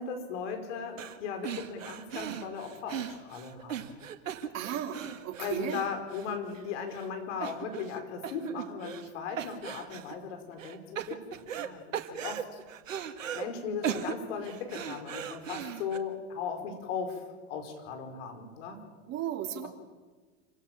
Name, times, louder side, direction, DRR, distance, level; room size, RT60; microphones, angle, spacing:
voice 1, 0.0-3.9 5.4-12.6 13.3-18.8 19.6-19.7, left 6 dB, 65° left, 5 dB, 5.2 m, -37 dB
sound 1, 1.0-1.2 1.4-6.6 6.9-7.1 7.4-8.0 8.2-9.1 9.4-10.1 10.6-11.7 11.9-13.5 13.8-16.0, right 9 dB, 85° right, 1.8 m, -38 dB
voice 2, 4.5-5.8 19.1-19.7, right 10 dB, 45° right, 2 dB, 3.2 m, -35 dB
27.5 x 17.0 x 7.4 m, 1.4 s
hypercardioid pair, 105°, 38 cm